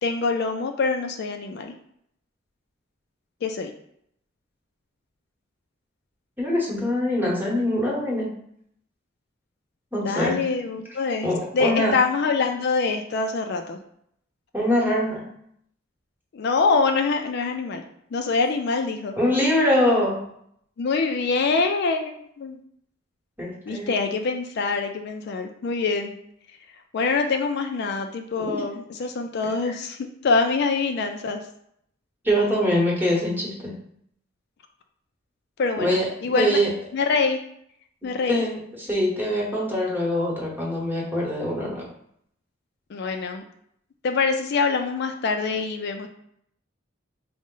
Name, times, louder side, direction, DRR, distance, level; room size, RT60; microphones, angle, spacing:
voice 1, 0.0-1.7 3.4-3.7 10.0-11.3 11.5-13.8 16.3-17.8 18.1-19.2 20.8-22.6 23.7-26.2 26.9-30.0 30.2-31.4 35.6-36.6 36.9-37.4 38.0-38.4 42.9-43.4 44.0-46.1, left 4 dB, 55° left, 5 dB, 0.4 m, -24 dB
voice 2, 6.4-8.3 9.9-10.4 11.2-12.0 14.5-15.2 19.2-20.2 23.4-24.1 28.4-28.7 29.4-29.7 32.2-33.7 35.8-36.1 36.3-36.7 38.3-41.9, left 1 dB, 10° right, -3 dB, 1.1 m, -24 dB
5.0 x 2.1 x 3.7 m, 0.71 s
head